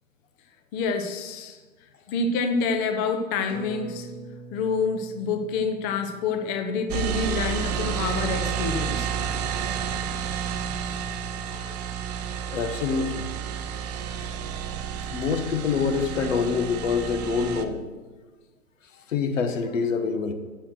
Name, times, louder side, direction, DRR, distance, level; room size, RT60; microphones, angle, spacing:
voice 1, 0.7-1.6 2.1-4.1 4.5-9.1 11.5-11.8, left 4 dB, 20° left, 7 dB, 0.7 m, -27 dB
sound 1, 3.5-8.4 8.8-8.9, right 2 dB, 5° left, 2.2 m, -45 dB
sound 2, 6.9-17.6, right 8 dB, 30° right, 0.6 m, -30 dB
voice 2, 12.5-13.3 15.1-17.8 19.1-20.3, left 5 dB, 65° left, 7 dB, 1.3 m, -26 dB
8.5 x 6.3 x 6.3 m, 1.3 s
hypercardioid pair, 130°, 42 cm